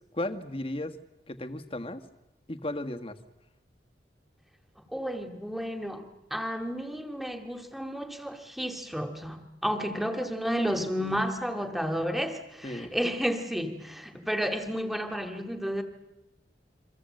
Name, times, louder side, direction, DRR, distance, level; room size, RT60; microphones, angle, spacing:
voice 1, 0.1-1.0 1.3-2.0 2.5-3.2 11.0-11.1 12.6-12.9, left 1 dB, 35° left, 7 dB, 1.6 m, -35 dB
voice 2, 4.8-15.8, equal, ahead, 6 dB, 2.1 m, -32 dB
28.5 x 24.0 x 7.8 m, 0.93 s
head